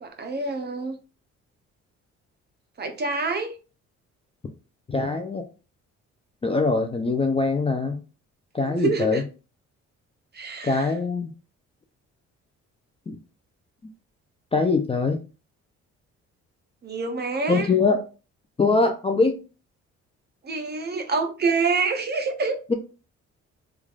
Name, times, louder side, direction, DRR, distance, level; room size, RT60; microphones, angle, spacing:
voice 1, 0.0-1.0 2.8-3.5 8.6-9.2 10.3-10.9 16.8-17.7 20.4-22.6, right 4 dB, 35° right, 5 dB, 0.6 m, -27 dB
voice 2, 4.9-5.4 6.4-8.0 8.5-9.2 10.6-11.3 13.1-13.2 14.5-15.2 17.5-18.0 18.6-19.4 22.7-22.8, left 3 dB, 20° left, 5 dB, 0.4 m, -22 dB
3.1 x 2.4 x 2.4 m, 0.33 s
cardioid pair, 90°, 30 cm